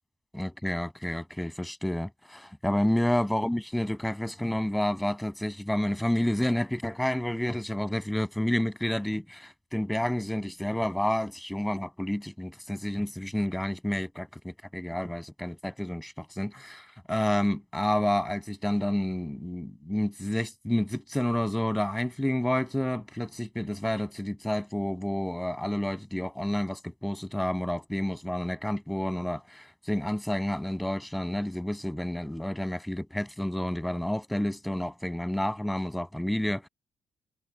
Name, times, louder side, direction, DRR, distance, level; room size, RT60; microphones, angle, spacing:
voice 1, 0.3-36.7, left 1 dB, 5° left, 7.2 m, -30 dB
cardioid pair, 90°, 0 cm